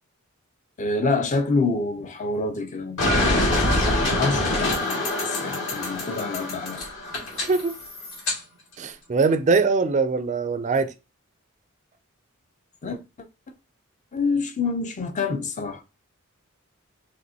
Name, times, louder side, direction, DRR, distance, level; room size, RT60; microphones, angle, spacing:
voice 1, 0.8-6.8 12.8-13.0 14.1-15.8, left 3 dB, 35° left, 0.5 m, -27 dB
sound 1, 3.0-8.4, left 1 dB, 60° left, 2.0 m, -25 dB
voice 2, 7.3-7.8 8.8-10.9, right 4 dB, 35° right, 0.4 m, -22 dB
5.2 x 3.3 x 2.7 m
head